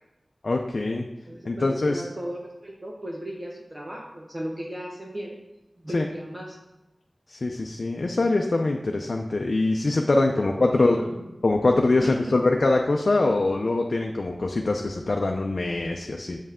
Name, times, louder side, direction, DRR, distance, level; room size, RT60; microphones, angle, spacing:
voice 1, 0.4-1.1 1.4-2.0 5.9-6.0 7.3-11.0 11.4-16.4, left 2 dB, 65° left, 2 dB, 0.5 m, -23 dB
voice 2, 1.3-5.4 5.8-6.6 10.4-11.2 12.0-12.3, equal, 40° right, -3 dB, 1.1 m, -36 dB
7.3 x 5.5 x 3.6 m, 0.96 s
wide cardioid pair, 60°, 0 cm